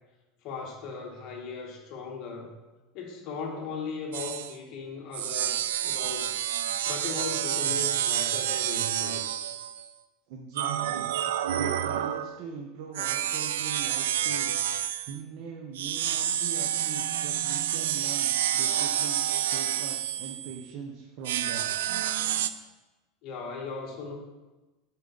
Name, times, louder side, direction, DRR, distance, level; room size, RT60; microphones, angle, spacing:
voice 1, 0.4-2.5 2.9-6.4 6.8-9.3 23.2-24.1, left 4 dB, 50° left, 1 dB, 1.4 m, -38 dB
sound 1, 4.1-4.5 5.1-9.9 10.6-12.4 12.9-15.2 15.8-20.6 21.2-22.5, right 11 dB, 90° right, 0.3 m, -29 dB
voice 2, 10.3-11.1 11.6-19.2 19.5-21.7, right 6 dB, 60° right, 1 dB, 0.9 m, -41 dB
8.5 x 4.5 x 4.1 m, 1.1 s
supercardioid pair, 130°, 0 cm